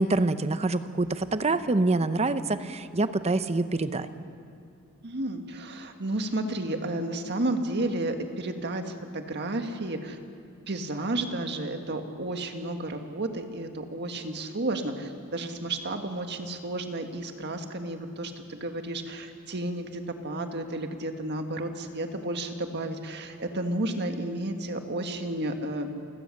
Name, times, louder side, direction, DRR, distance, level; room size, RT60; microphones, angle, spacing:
voice 1, 0.0-4.1, right 2 dB, 30° right, 12 dB, 0.7 m, -26 dB
voice 2, 5.0-10.2 10.7-25.9, right 1 dB, 50° right, 6 dB, 1.7 m, -32 dB
28.5 x 17.0 x 6.6 m, 2.4 s
head